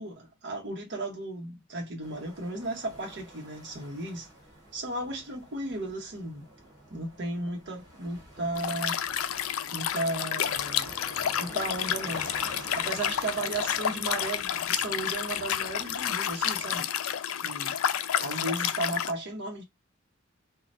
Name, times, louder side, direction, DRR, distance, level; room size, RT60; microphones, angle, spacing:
voice 1, 0.0-4.3 4.7-6.5 6.9-9.0 9.7-10.9 11.4-12.3 12.7-16.9 17.4-17.8 18.2-19.6, right 2 dB, 60° right, 0.9 m, -35 dB
sound 1, 2.0-16.8, right 1 dB, 20° right, 1.4 m, -48 dB
Liquid, 8.6-19.1, left 10 dB, 80° left, 0.4 m, -30 dB
3.2 x 2.3 x 2.5 m
head